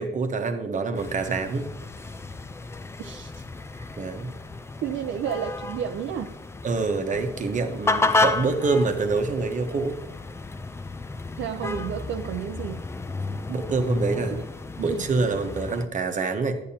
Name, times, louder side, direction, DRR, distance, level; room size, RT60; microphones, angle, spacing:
voice 1, 0.0-1.7 4.0-4.3 6.6-10.0 13.5-14.3 14.8-16.5, right 4 dB, 35° right, 6 dB, 1.0 m, -26 dB
sound 1, 0.9-15.9, left 3 dB, 15° left, 0.4 m, -31 dB
voice 2, 3.0-3.4 3.7-3.9 4.8-6.3 11.4-12.8 14.2-14.5 14.9-15.0, right 9 dB, 65° right, 5 dB, 0.5 m, -32 dB
10.0 x 8.5 x 2.8 m, 0.88 s
cardioid pair, 120°, 21 cm